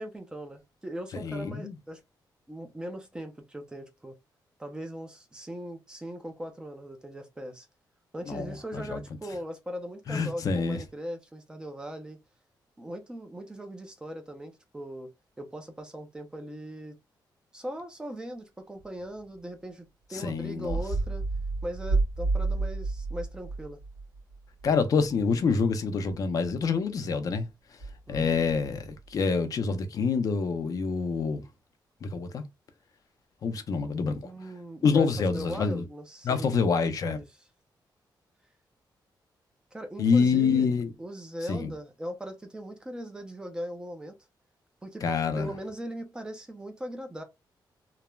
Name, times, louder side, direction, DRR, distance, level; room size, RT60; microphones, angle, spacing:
voice 1, 0.0-2.0 2.5-4.1 4.6-7.7 8.1-12.2 12.8-15.1 15.4-17.0 17.5-21.2 21.6-23.8 28.1-28.4 34.2-36.6 37.0-37.3 39.7-40.7 41.0-44.1 44.8-45.0 45.3-47.2, equal, 10° right, 0.4 m, -39 dB
voice 2, 1.1-1.7 8.3-9.0 10.1-10.8 20.1-20.8 24.6-27.5 28.1-31.4 32.0-32.4 33.4-34.3 34.8-35.8 36.2-37.2 40.0-40.9 41.5-41.7 45.0-45.5, left 5 dB, 50° left, 0.4 m, -26 dB
sound 1, 18.8-19.0 20.7-24.7 25.0-25.3 26.1-26.3 27.8-28.9, right 3 dB, 55° right, 1.1 m, -30 dB
3.1 x 2.0 x 2.2 m
wide cardioid pair, 180°, 8 cm